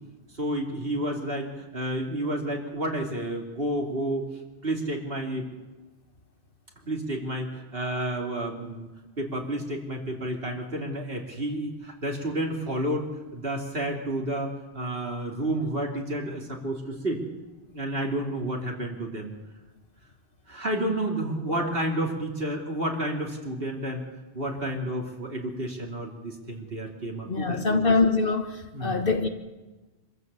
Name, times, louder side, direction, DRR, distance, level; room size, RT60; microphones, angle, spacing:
voice 1, 0.3-4.2 4.6-5.5 6.9-8.9 9.2-13.1 13.3-17.2 17.7-19.3 20.5-24.0 24.3-27.6 28.7-29.0, right 1 dB, 55° right, 3.2 m, -30 dB
voice 2, 27.3-29.3, left 3 dB, 50° left, 1.6 m, -24 dB
25.5 x 15.0 x 6.8 m
omnidirectional pair, 1.2 m